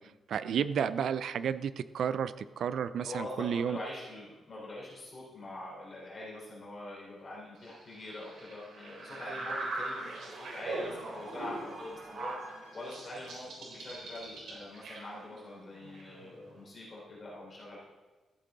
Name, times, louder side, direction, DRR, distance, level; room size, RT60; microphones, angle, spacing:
voice 1, 0.3-3.8, right 8 dB, 65° right, 14 dB, 0.4 m, -32 dB
voice 2, 3.0-17.8, left 1 dB, 30° left, -5 dB, 4.3 m, -44 dB
sound 1, 7.6-16.6, right 2 dB, 80° right, 3.7 m, -41 dB
14.0 x 8.3 x 4.0 m, 1.2 s
wide cardioid pair, 170°, 0 cm